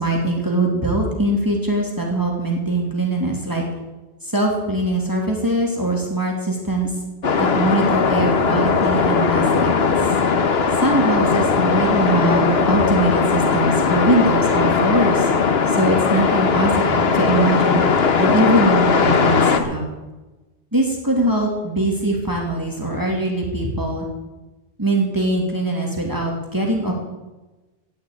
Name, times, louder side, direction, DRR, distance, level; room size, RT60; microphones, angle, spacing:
voice 1, 0.0-3.6 4.2-6.9 7.4-10.0 10.8-15.3 15.7-17.8 18.2-19.8 20.7-24.1 24.8-26.9, right 1 dB, 20° right, -1 dB, 2.7 m, -22 dB
sound 1, 7.2-19.6, left 5 dB, 75° left, 1.3 m, -18 dB
17.5 x 6.4 x 8.7 m, 1.1 s
omnidirectional pair, 1.0 m